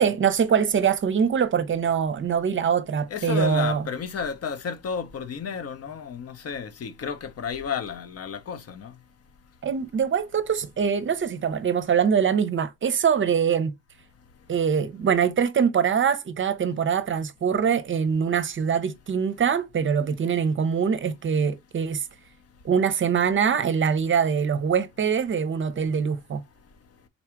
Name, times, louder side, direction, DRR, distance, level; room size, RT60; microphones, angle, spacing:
voice 1, 0.0-3.9 9.6-13.7 14.5-22.1 22.6-26.4, right 7 dB, 40° right, 0.6 m, -23 dB
voice 2, 3.1-9.0, left 6 dB, 55° left, 0.8 m, -32 dB
4.0 x 2.4 x 4.4 m
cardioid pair, 90°, 30 cm